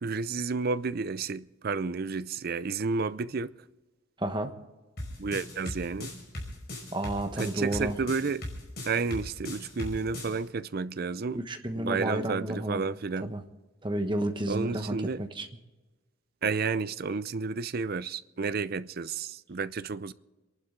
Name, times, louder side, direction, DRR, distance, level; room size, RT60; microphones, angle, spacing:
voice 1, 0.0-3.5 5.2-6.1 7.4-8.4 8.8-11.4 11.7-13.3 14.5-15.2 16.4-20.1, right 4 dB, 45° right, 0.5 m, -31 dB
voice 2, 4.2-4.5 6.9-8.0 11.3-12.8 13.2-13.4 13.8-15.5, right 1 dB, 25° right, 1.2 m, -31 dB
sound 1, 5.0-10.3, left 1 dB, 50° left, 5.5 m, -38 dB
28.5 x 11.5 x 3.8 m
head